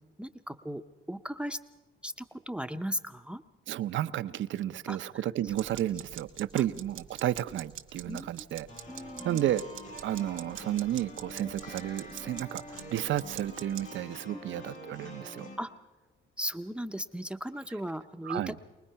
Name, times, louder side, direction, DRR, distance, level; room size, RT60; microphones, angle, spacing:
voice 1, 0.2-0.8 1.1-1.6 2.0-3.4 4.9-5.2 6.5-6.6 8.1-8.3 8.9-9.5 14.3-14.4 15.6-15.7 16.4-18.6, equal, 5° right, 10 dB, 0.7 m, -37 dB
voice 2, 3.7-8.7 9.2-9.6 10.0-15.5 18.2-18.5, right 12 dB, 70° right, 14 dB, 0.7 m, -32 dB
sound 1, 5.5-13.9, right 12 dB, 90° right, 2.0 m, -46 dB
sound 2, 8.7-15.6, left 1 dB, 80° left, 7.2 m, -46 dB
23.5 x 20.0 x 5.7 m, 1.2 s
cardioid pair, 90°, 20 cm